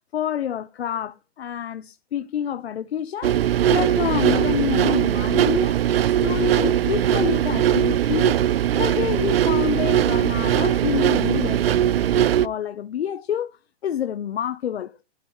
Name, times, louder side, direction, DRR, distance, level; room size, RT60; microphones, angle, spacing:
voice 1, 0.1-3.4 3.7-5.8 6.0-8.4 8.7-15.0, left 10 dB, 75° left, 0.9 m, -28 dB
sound 1, 3.2-12.5, right 11 dB, 65° right, 0.6 m, -20 dB
10.5 x 10.5 x 3.1 m
hypercardioid pair, 175°, 32 cm